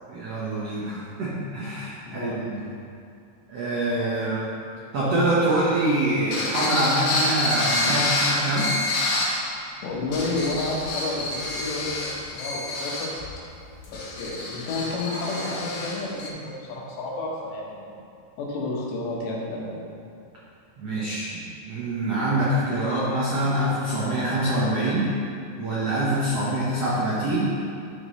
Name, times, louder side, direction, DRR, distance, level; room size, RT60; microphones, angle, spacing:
voice 1, 0.1-2.7 3.5-4.5 4.9-8.8 20.8-25.2 25.6-27.6, right 1 dB, 75° right, -8 dB, 1.4 m, -25 dB
voice 2, 2.0-2.4 7.9-8.0 9.8-13.1 13.9-17.9 18.4-19.8, left 2 dB, 85° left, -3 dB, 3.6 m, -31 dB
sound 1, 6.3-9.4 9.9-16.3, left 2 dB, 60° left, 2.8 m, -28 dB
11.5 x 6.5 x 3.2 m, 2.5 s
omnidirectional pair, 4.9 m